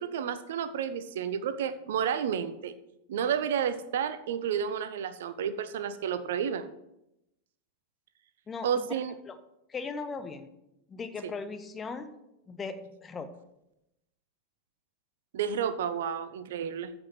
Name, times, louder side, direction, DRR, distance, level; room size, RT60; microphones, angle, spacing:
voice 1, 0.0-2.8 3.1-6.7 8.6-9.1 11.2-11.3 15.3-16.9, right 8 dB, 55° right, 13 dB, 0.7 m, -31 dB
voice 2, 8.5-8.9 9.3-9.4 9.7-10.5 10.9-12.2 12.5-13.3, left 4 dB, 20° left, 11 dB, 1.1 m, -38 dB
14.5 x 5.4 x 6.0 m, 0.87 s
figure-of-eight pair, 90°, 0 cm